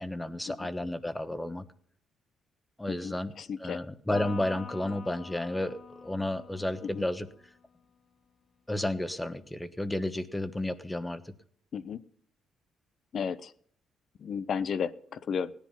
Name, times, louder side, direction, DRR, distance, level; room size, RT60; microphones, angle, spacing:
voice 1, 0.0-1.6 2.8-3.3 3.6-7.3 8.7-11.3, left 1 dB, 10° left, 12 dB, 1.2 m, -32 dB
voice 2, 2.9-3.8 6.8-7.0 11.7-12.0 13.1-13.5 14.2-15.5, left 6 dB, 55° left, 16 dB, 0.8 m, -34 dB
Electric guitar, 4.1-7.6, left 6 dB, 35° left, 1.6 m, -46 dB
17.0 x 10.5 x 5.7 m, 0.62 s
cardioid pair, 90°, 0 cm